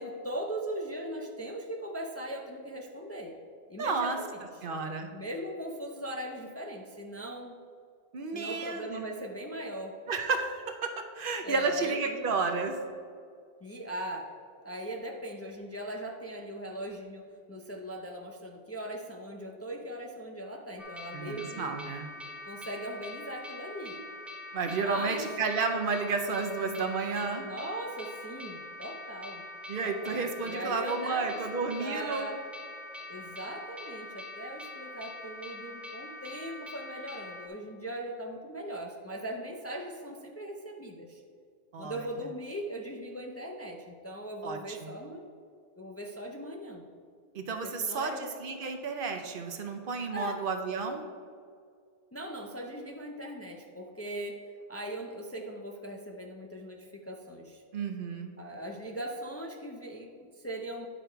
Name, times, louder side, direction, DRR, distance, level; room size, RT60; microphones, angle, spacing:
voice 1, 0.0-3.4 3.7-4.4 5.1-7.5 8.3-10.0 11.4-12.3 13.6-14.3 14.6-21.8 22.5-24.0 24.7-25.3 27.4-29.4 29.8-32.4 33.1-41.2 41.8-45.3 45.8-46.8 47.5-48.3 50.1-50.4 52.1-54.4 54.7-57.6 58.4-60.9, right 1 dB, 20° left, 1 dB, 0.5 m, -39 dB
voice 2, 3.8-4.2 4.6-5.1 8.1-9.1 10.1-12.8 21.1-22.1 24.5-27.5 29.7-32.2 41.7-42.1 44.4-44.9 47.3-51.0 57.7-58.3, right 4 dB, 60° right, 5 dB, 0.9 m, -32 dB
sound 1, 20.8-37.5, left 2 dB, ahead, 0.9 m, -44 dB
9.8 x 5.0 x 4.5 m, 2.2 s
omnidirectional pair, 1.0 m